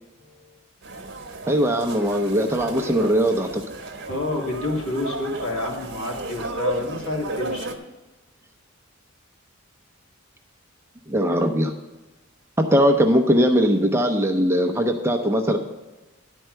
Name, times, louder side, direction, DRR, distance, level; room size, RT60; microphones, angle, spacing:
sound 1, 0.8-7.8, right 2 dB, 50° right, 1.2 m, -33 dB
voice 1, 1.5-3.6 11.1-11.7 12.6-15.6, equal, 10° right, 4 dB, 0.6 m, -20 dB
voice 2, 4.1-7.7, left 2 dB, 70° left, -1 dB, 2.4 m, -28 dB
10.5 x 4.5 x 7.6 m, 1.1 s
head